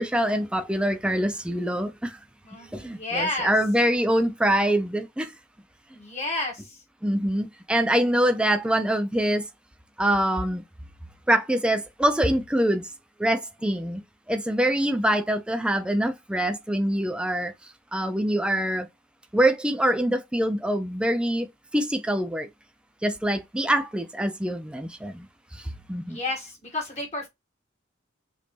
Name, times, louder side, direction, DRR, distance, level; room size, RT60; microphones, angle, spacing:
voice 1, 0.0-2.2 2.7-5.3 7.0-9.4 10.0-10.6 11.3-12.9 13.2-14.0 14.3-17.5 17.9-18.9 19.3-21.5 21.7-22.5 23.0-25.1 25.9-26.2, right 1 dB, 5° right, 0.5 m, -24 dB
voice 2, 2.4-3.6 5.9-6.8 26.1-27.3, left 2 dB, 35° left, 1.7 m, -31 dB
5.2 x 2.7 x 3.2 m
head